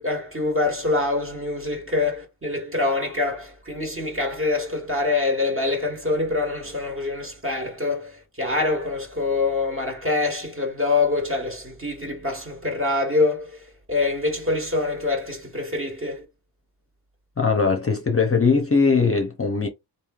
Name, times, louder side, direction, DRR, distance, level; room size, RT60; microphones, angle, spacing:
voice 1, 0.0-13.6 13.9-16.2, left 3 dB, 30° right, 1.3 m, -25 dB
voice 2, 17.4-19.7, left 4 dB, 30° left, 0.6 m, -20 dB
3.1 x 2.7 x 2.4 m
cardioid pair, 45°, 44 cm